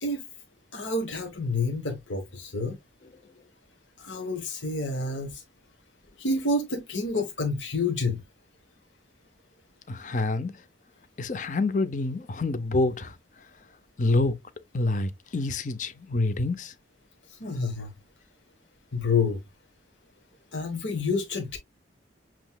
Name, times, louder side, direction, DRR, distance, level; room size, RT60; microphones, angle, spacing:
voice 1, 0.7-2.8 4.0-5.4 6.2-8.2 17.3-17.9 18.9-19.4 20.5-21.6, left 3 dB, 85° left, 1.2 m, -28 dB
voice 2, 9.9-10.5 11.2-13.1 14.0-14.3 14.7-16.7, left 2 dB, 45° left, 0.5 m, -27 dB
7.7 x 3.0 x 2.2 m
head